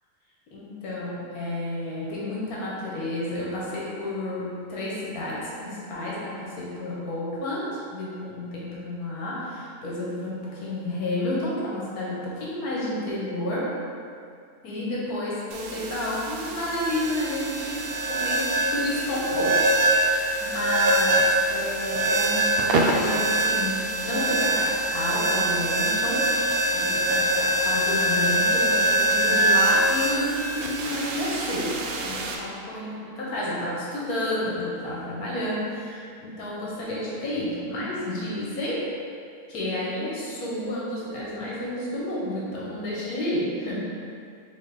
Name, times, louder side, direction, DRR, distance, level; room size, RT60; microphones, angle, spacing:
voice 1, 0.5-13.7 14.6-17.8 18.1-18.4 18.7-26.2 26.7-38.9 39.5-43.8, left 1 dB, 80° left, -6 dB, 1.4 m, -30 dB
sound 1, 15.5-32.4, right 1 dB, 90° right, 0.5 m, -24 dB
4.1 x 3.6 x 3.3 m, 2.3 s
omnidirectional pair, 1.6 m